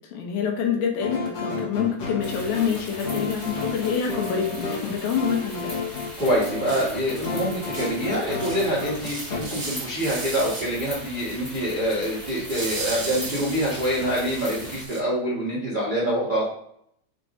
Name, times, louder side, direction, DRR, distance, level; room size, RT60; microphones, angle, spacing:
voice 1, 0.1-5.7, left 7 dB, 75° left, 1 dB, 2.8 m, -26 dB
sound 1, 1.0-9.4, left 4 dB, 55° left, 2.2 m, -32 dB
sound 2, 2.2-14.8, equal, 30° left, 0.7 m, -40 dB
sound 3, 6.2-6.3 6.7-6.8 7.2-7.3 7.7-7.9 8.4-8.7 9.0-10.7 12.5-15.0, right 3 dB, 60° right, 0.9 m, -35 dB
voice 2, 6.2-16.4, right 1 dB, 85° right, -8 dB, 0.4 m, -26 dB
8.1 x 4.6 x 2.7 m, 0.69 s
omnidirectional pair, 4.4 m